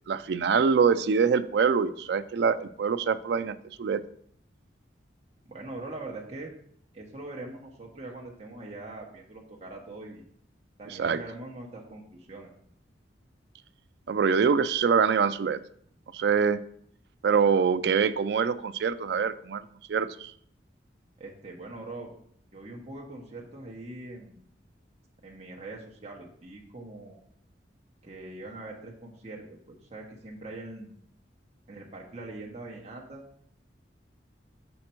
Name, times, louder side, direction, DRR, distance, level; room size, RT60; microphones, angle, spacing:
voice 1, 0.1-4.0 10.9-11.2 14.1-15.6 16.1-16.6 17.2-20.3, right 6 dB, 65° right, 13 dB, 0.3 m, -25 dB
voice 2, 5.5-6.5 6.9-10.2 10.8-12.5 21.2-22.1 22.5-24.4 25.2-27.2 28.0-30.9 31.7-33.2, right 2 dB, 35° right, -1 dB, 0.9 m, -42 dB
6.4 x 4.3 x 4.3 m, 0.65 s
head